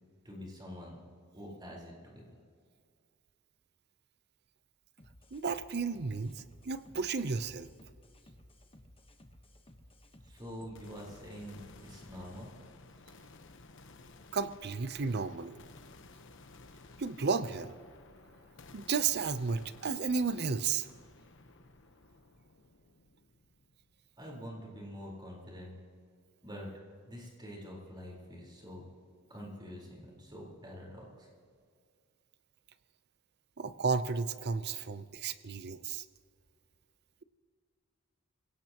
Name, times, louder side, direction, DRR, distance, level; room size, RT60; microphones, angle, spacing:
voice 1, 0.2-1.0 1.3-2.2 10.2-12.5 24.2-25.8 26.4-26.7 27.1-28.9 29.3-31.3, equal, 20° right, -2 dB, 4.2 m, -46 dB
sound 1, 5.0-12.5, left 1 dB, 25° left, 1.2 m, -58 dB
voice 2, 5.3-7.7 14.3-15.6 17.0-17.7 18.7-20.9 33.6-36.0, right 5 dB, 50° right, 13 dB, 0.6 m, -33 dB
sound 2, 10.8-24.7, left 3 dB, 60° left, 1.1 m, -56 dB
25.5 x 17.0 x 3.0 m, 2.2 s
head